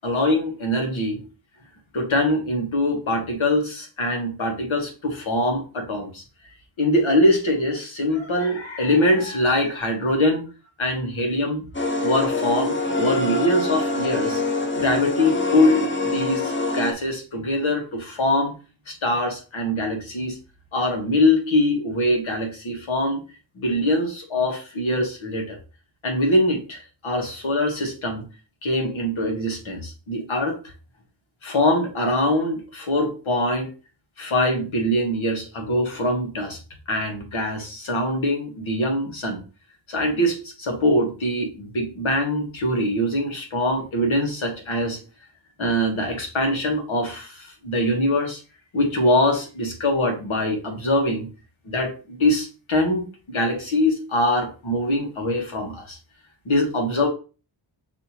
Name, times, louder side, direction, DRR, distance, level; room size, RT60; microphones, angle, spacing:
voice 1, 0.0-1.2 1.9-6.2 6.8-10.4 10.8-11.6 12.0-14.4 14.7-18.5 18.9-20.4 20.7-23.2 23.5-25.6 26.0-28.2 28.6-30.7 31.4-33.7 34.2-36.6 36.9-39.4 39.9-45.0 45.6-48.4 48.7-51.2 51.6-56.0 56.4-57.1, left 1 dB, 90° left, 2 dB, 1.4 m, -23 dB
sound 1, 11.7-16.9, left 2 dB, 25° left, 0.7 m, -25 dB
6.4 x 2.7 x 2.9 m, 0.34 s
wide cardioid pair, 85°, 46 cm